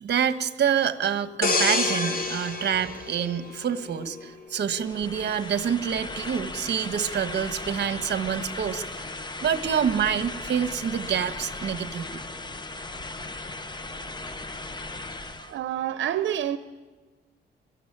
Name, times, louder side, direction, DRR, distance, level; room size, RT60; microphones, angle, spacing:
voice 1, 0.0-12.2, right 8 dB, 60° right, 1.2 m, -27 dB
sound 1, 1.4-4.1 4.6-4.8, left 3 dB, 50° left, 2.4 m, -27 dB
sound 2, 4.7-15.6, left 2 dB, 25° left, 1.1 m, -37 dB
voice 2, 15.4-16.6, right 11 dB, 90° right, 0.7 m, -28 dB
23.5 x 13.5 x 10.0 m
wide cardioid pair, 125°, 19 cm